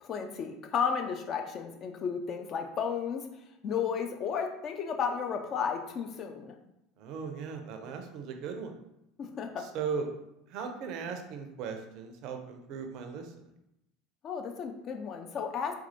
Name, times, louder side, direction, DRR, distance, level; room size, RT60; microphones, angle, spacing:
voice 1, 0.0-3.2 3.6-6.5 9.2-9.7 14.2-15.8, left 6 dB, 45° left, 4 dB, 0.5 m, -33 dB
voice 2, 7.0-8.7 9.6-10.1 10.5-13.3, right 6 dB, 55° right, 5 dB, 0.5 m, -37 dB
4.2 x 2.3 x 2.7 m, 0.85 s
figure-of-eight pair, 70°, 0 cm